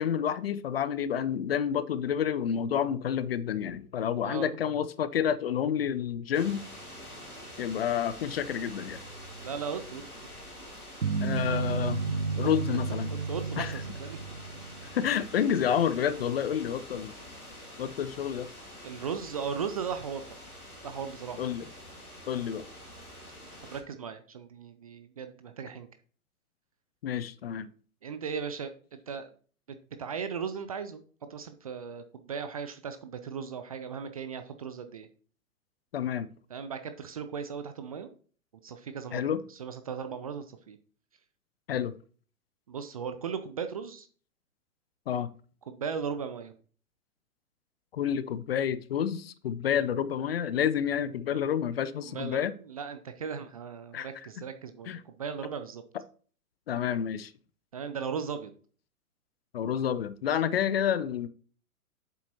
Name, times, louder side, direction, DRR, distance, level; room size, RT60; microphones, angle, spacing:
voice 1, 0.0-6.6 7.6-9.0 11.2-13.1 13.6-13.8 14.9-17.1 17.8-18.5 21.4-21.7 22.3-22.6 27.0-27.7 35.9-36.3 39.1-39.4 41.7-41.9 45.1-45.3 47.9-52.5 53.9-54.1 54.9-55.0 56.7-57.3 59.5-61.3, left 8 dB, 45° left, 0.6 m, -29 dB
sound 1, 6.3-23.8, left 1 dB, 90° left, 2.0 m, -46 dB
voice 2, 9.4-10.0 12.3-12.8 13.1-14.2 18.8-20.4 20.8-21.5 23.6-25.9 28.0-29.3 29.7-31.0 31.3-35.1 36.5-38.1 38.6-40.8 42.7-44.1 45.7-46.5 52.0-55.8 57.7-58.5, right 6 dB, 25° right, 0.4 m, -37 dB
sound 2, 11.0-15.2, right 4 dB, 85° right, 0.8 m, -32 dB
8.3 x 7.0 x 2.9 m
figure-of-eight pair, 110°, 43 cm